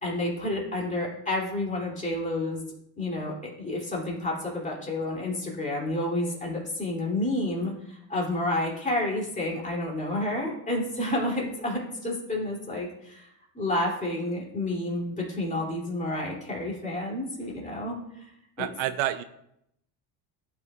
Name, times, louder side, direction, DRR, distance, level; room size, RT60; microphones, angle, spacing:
voice 1, 0.0-2.6 3.0-13.3 13.5-18.3 18.6-18.7, left 1 dB, 15° left, -3 dB, 2.7 m, -30 dB
voice 2, 18.6-19.2, right 13 dB, 70° right, 11 dB, 0.6 m, -28 dB
12.0 x 5.6 x 2.4 m, 0.77 s
cardioid pair, 125°, 47 cm